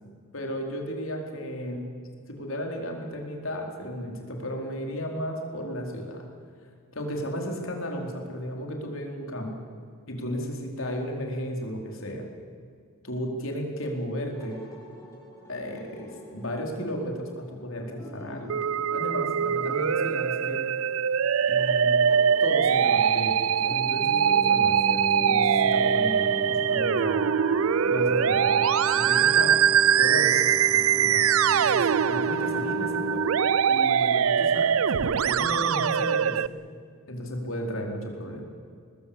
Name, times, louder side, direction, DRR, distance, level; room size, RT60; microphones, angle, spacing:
voice 1, 0.3-1.9 2.3-6.2 6.9-9.6 10.1-12.2 13.0-14.6 15.5-20.7 21.5-22.0 22.4-27.3 27.8-28.7 28.9-29.7 30.0-33.4 33.7-36.4 37.1-38.5, equal, 65° left, 2 dB, 4.4 m, -34 dB
sound 1, 14.2-25.0, equal, 15° left, 5.2 m, -47 dB
Musical instrument, 18.5-36.5, right 8 dB, 70° right, 0.5 m, -23 dB
sound 2, 23.7-35.1, right 1 dB, 10° right, 2.0 m, -35 dB
22.0 x 20.0 x 8.8 m, 2.2 s
head